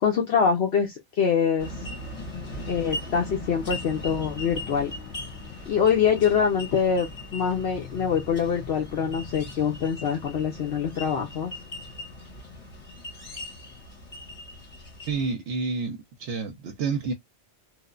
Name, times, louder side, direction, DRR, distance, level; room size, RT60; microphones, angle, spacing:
voice 1, 0.0-1.7 2.7-4.9 5.7-11.6, left 7 dB, 70° left, 0.9 m, -24 dB
sound 1, 1.6-15.3, left 2 dB, 40° left, 1.8 m, -39 dB
voice 2, 15.1-17.1, right 4 dB, 85° right, 0.9 m, -29 dB
3.1 x 2.0 x 2.2 m
omnidirectional pair, 1.1 m